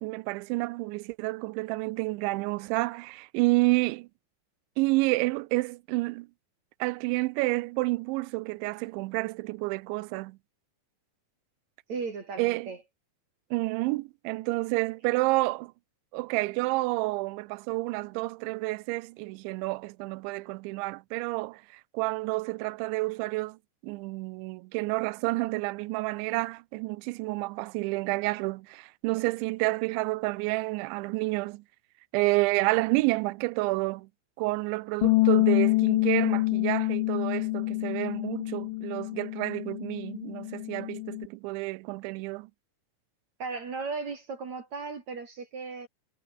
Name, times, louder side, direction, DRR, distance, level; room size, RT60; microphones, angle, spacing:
voice 1, 0.0-4.1 4.8-6.3 6.8-10.4 12.4-12.7 13.5-15.7 16.1-31.6 32.1-34.1 34.4-42.5, right 23 dB, 85° right, 2.9 m, -29 dB
voice 2, 11.9-12.8 43.4-45.9, right 4 dB, 45° right, 3.5 m, -36 dB
Bass guitar, 35.0-41.3, left 21 dB, 90° left, 3.1 m, -27 dB
omnidirectional pair, 5.3 m